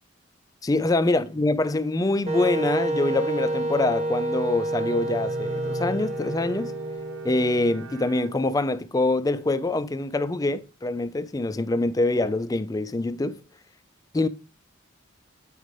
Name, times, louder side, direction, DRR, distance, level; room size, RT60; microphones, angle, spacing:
voice 1, 0.6-6.7 7.2-13.4 14.1-14.3, left 2 dB, 15° left, 0.3 m, -25 dB
Wind instrument woodwind instrument, 2.3-8.1, right 1 dB, 30° right, 1.1 m, -29 dB
Bowed string instrument, 4.5-8.9, right 2 dB, 70° right, 1.1 m, -39 dB
8.5 x 5.1 x 3.2 m
head